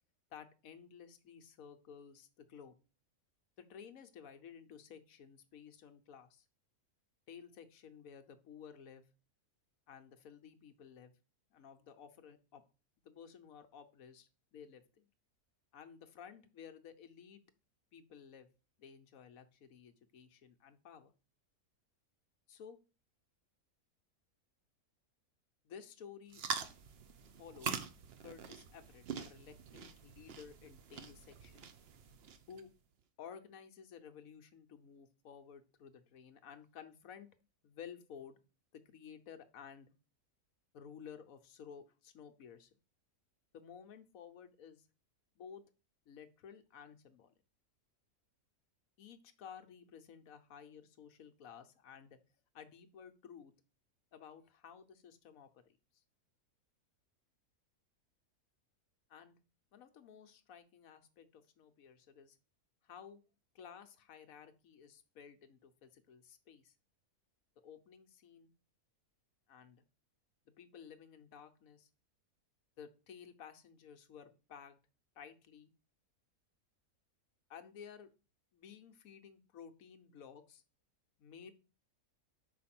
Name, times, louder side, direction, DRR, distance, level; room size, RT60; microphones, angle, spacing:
voice 1, 0.3-2.7 3.6-6.5 7.3-9.1 9.9-11.1 11.5-12.6 13.0-15.1 15.7-17.4 17.9-18.5 18.8-21.1 22.5-22.8 25.6-26.4 27.4-27.9 28.2-31.7 32.5-32.7 33.2-37.3 37.6-38.4 38.7-39.9 40.7-42.7 43.5-44.9 45.4-45.6 46.1-47.3 49.0-52.2 52.5-53.5 54.1-55.8 59.1-59.4 59.7-62.4 62.8-63.2 63.5-66.7 67.6-68.5 69.5-69.8 70.5-71.9 72.8-74.8 75.1-75.7 77.5-78.1 78.5-80.6 81.2-81.5, left 7 dB, 70° left, 7 dB, 1.2 m, -54 dB
sound 1, 26.3-32.6, right 6 dB, 55° right, 0.8 m, -44 dB
5.6 x 4.3 x 5.9 m, 0.34 s
omnidirectional pair, 1.6 m